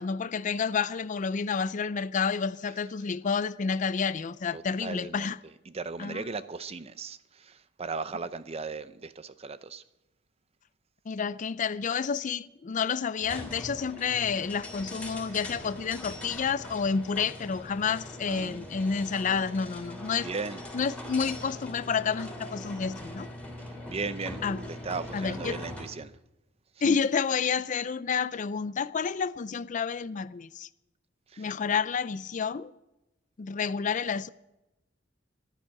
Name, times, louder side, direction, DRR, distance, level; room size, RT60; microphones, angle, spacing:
voice 1, 0.0-5.4 6.0-6.3 11.1-20.3 20.7-23.3 24.4-24.6 25.1-25.6 26.8-30.7 31.4-32.7 33.4-34.3, left 6 dB, 40° left, 0.4 m, -29 dB
voice 2, 4.5-5.3 5.7-9.8 18.3-18.6 20.2-20.6 23.8-24.4 24.7-26.1 26.8-27.0 31.3-31.5, right 4 dB, 30° right, 0.6 m, -37 dB
sound 1, 13.2-26.0, left 1 dB, 5° left, 3.1 m, -41 dB
14.5 x 11.5 x 5.9 m
head